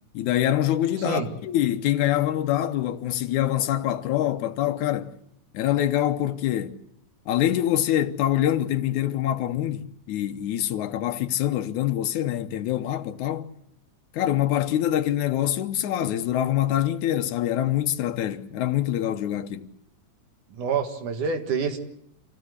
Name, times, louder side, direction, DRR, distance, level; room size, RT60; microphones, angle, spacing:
voice 1, 0.1-5.1 5.5-6.8 7.3-13.5 14.1-19.7, left 12 dB, 80° left, 2.4 m, -25 dB
voice 2, 20.5-21.8, right 5 dB, 80° right, 3.3 m, -27 dB
26.5 x 16.0 x 8.1 m
omnidirectional pair, 3.5 m